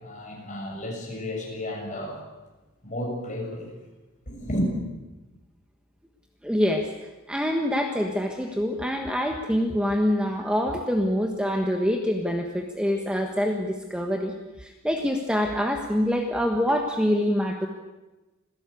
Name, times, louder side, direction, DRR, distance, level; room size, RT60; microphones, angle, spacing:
voice 1, 0.0-2.2 2.8-3.7 4.3-4.7, equal, 35° left, 0 dB, 7.0 m, -32 dB
voice 2, 6.4-6.9 7.3-17.7, equal, 5° right, 3 dB, 1.4 m, -25 dB
26.5 x 17.0 x 8.4 m, 1.1 s
head